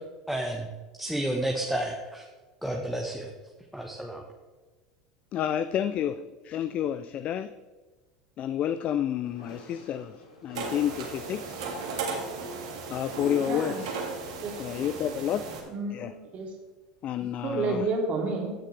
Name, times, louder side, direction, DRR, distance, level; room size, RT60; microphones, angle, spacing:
voice 1, 0.3-0.7 1.0-2.2 2.6-3.3 3.7-4.2, right 1 dB, ahead, 1 dB, 1.1 m, -31 dB
voice 2, 5.3-7.5 8.4-10.2 10.4-11.8 12.9-14.0 14.6-15.6 15.9-16.1 17.0-17.8, left 10 dB, 45° left, 13 dB, 0.4 m, -30 dB
sound 1, 9.2-14.4, left 1 dB, 85° left, 2.2 m, -51 dB
sound 2, 10.5-15.6, right 4 dB, 75° right, 2.0 m, -36 dB
voice 3, 13.4-13.9 14.4-14.5 15.7-16.5 17.4-18.5, right 3 dB, 45° right, 0 dB, 2.7 m, -30 dB
15.5 x 6.5 x 3.3 m, 1.3 s
hypercardioid pair, 80°, 3 cm